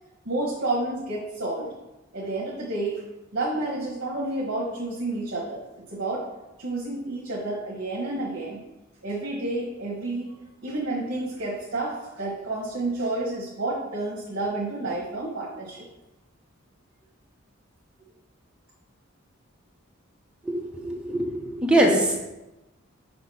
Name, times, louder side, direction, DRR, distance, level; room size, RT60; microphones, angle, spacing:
voice 1, 0.2-1.7 2.1-3.0 3.3-5.6 5.9-6.2 6.6-8.6 9.0-10.3 10.6-15.8, right 2 dB, 60° right, -4 dB, 1.2 m, -30 dB
voice 2, 20.4-22.2, right 1 dB, 5° right, -2 dB, 0.9 m, -23 dB
6.0 x 3.0 x 5.5 m, 1.0 s
head